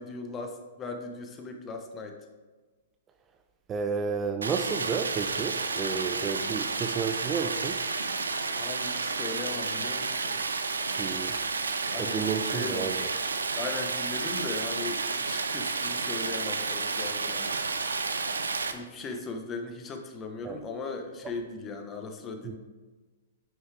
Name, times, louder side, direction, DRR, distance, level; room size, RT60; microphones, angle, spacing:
voice 1, 0.0-2.2 8.6-10.4 11.9-12.9 13.5-17.6 18.7-22.6, left 3 dB, 25° left, 4 dB, 1.0 m, -38 dB
voice 2, 3.7-7.8 11.0-11.4 12.0-13.1 20.4-20.6 22.4-22.6, right 6 dB, 20° right, 6 dB, 0.5 m, -31 dB
Stream, 4.4-18.7, right 4 dB, 90° right, 0.6 m, -31 dB
9.2 x 5.5 x 3.4 m, 1.3 s
hypercardioid pair, 120°, 0 cm